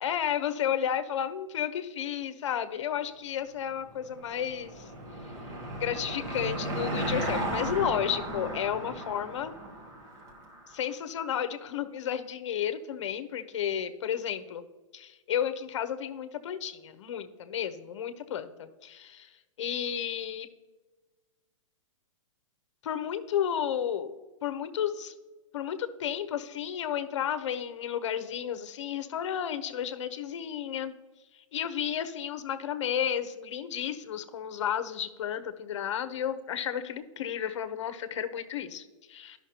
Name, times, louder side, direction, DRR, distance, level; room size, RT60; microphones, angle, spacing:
voice 1, 0.0-4.9 5.8-9.5 10.7-14.6 14.9-19.3 19.6-20.5 22.8-24.2 24.4-25.1 25.5-30.9 31.3-39.4, left 9 dB, 60° left, 11 dB, 0.8 m, -32 dB
Car passing by / Engine, 3.9-10.7, right 1 dB, 20° right, 0.9 m, -35 dB
12.0 x 5.8 x 2.9 m, 1.2 s
hypercardioid pair, 160°, 17 cm